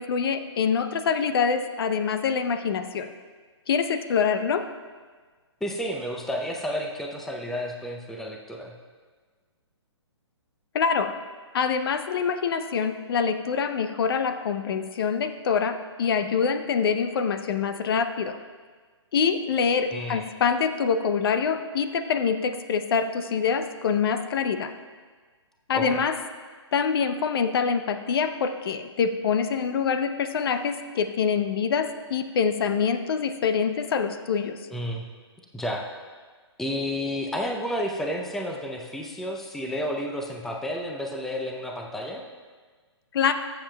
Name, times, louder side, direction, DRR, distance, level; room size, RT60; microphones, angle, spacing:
voice 1, 0.0-3.1 3.7-4.6 10.7-11.1 11.5-18.4 19.1-24.7 25.7-26.1 26.7-34.6 43.1-43.3, left 6 dB, 55° left, 10 dB, 0.6 m, -25 dB
voice 2, 5.6-8.7 19.9-20.2 25.7-26.0 34.7-35.0 35.5-35.8 36.6-42.2, equal, ahead, 2 dB, 0.5 m, -31 dB
21.0 x 7.2 x 2.3 m, 1.5 s
hypercardioid pair, 135°, 15 cm